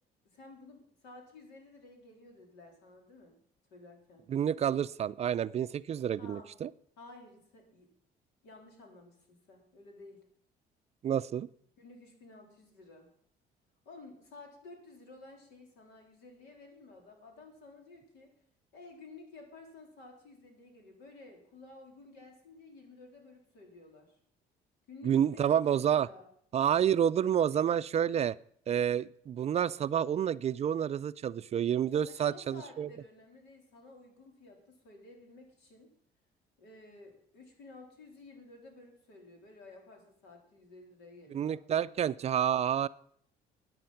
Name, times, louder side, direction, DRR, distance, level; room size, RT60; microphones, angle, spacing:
voice 1, 0.2-3.4 3.7-4.3 6.2-6.5 7.0-7.9 8.4-10.2 11.8-13.1 13.9-18.3 18.7-24.2 24.9-26.3 31.9-35.9 36.6-42.1, left 3 dB, 85° left, 2 dB, 3.8 m, -53 dB
voice 2, 4.3-6.7 11.0-11.5 25.0-26.1 26.5-28.4 28.7-32.9 41.3-42.9, right 9 dB, 40° right, 15 dB, 0.4 m, -29 dB
14.0 x 9.3 x 5.8 m, 0.64 s
cardioid pair, 110°, 17 cm